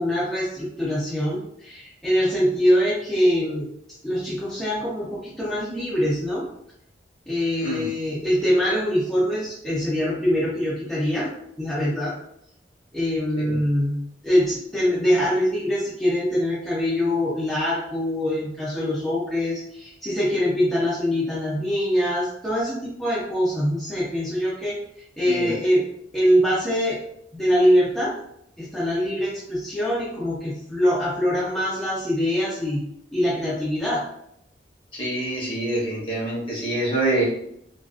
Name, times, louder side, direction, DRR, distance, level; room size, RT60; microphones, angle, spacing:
voice 1, 0.0-3.7 4.0-6.5 7.3-11.3 11.6-12.1 12.9-24.8 25.2-25.8 26.1-27.0 27.3-28.1 28.6-32.8 33.1-34.0, equal, ahead, -9 dB, 0.5 m, -23 dB
voice 2, 34.9-37.2, right 2 dB, 30° left, -5 dB, 0.9 m, -26 dB
2.3 x 2.2 x 2.4 m, 0.74 s
head